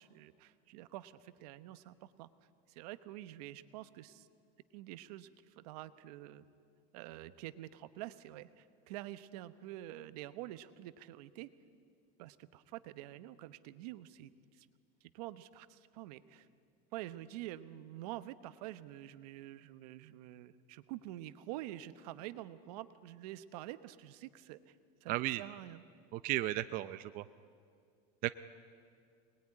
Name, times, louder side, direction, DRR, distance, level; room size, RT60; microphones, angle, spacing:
voice 1, 0.0-2.3 2.7-4.3 4.7-6.4 6.9-11.5 12.2-14.7 15.0-16.5 16.9-24.7 25.0-25.8, right 14 dB, 80° right, 13 dB, 1.1 m, -47 dB
voice 2, 25.1-25.4 26.1-27.2, right 16 dB, 45° right, 12 dB, 0.6 m, -35 dB
24.5 x 20.5 x 9.8 m, 2.3 s
cardioid pair, 155°, 20 cm